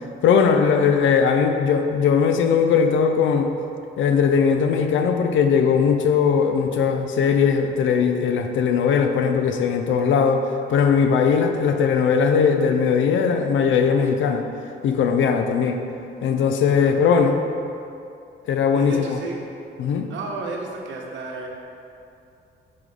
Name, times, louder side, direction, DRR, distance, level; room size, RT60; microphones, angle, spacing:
voice 1, 0.2-3.5 4.0-14.4 14.8-15.8 16.2-17.4 18.5-19.2 19.8-20.1, left 6 dB, 75° left, 5 dB, 0.5 m, -19 dB
voice 2, 18.7-19.4 20.1-21.5, right 3 dB, 70° right, 0 dB, 0.9 m, -32 dB
5.8 x 3.3 x 5.2 m, 2.6 s
cardioid pair, 90°, 20 cm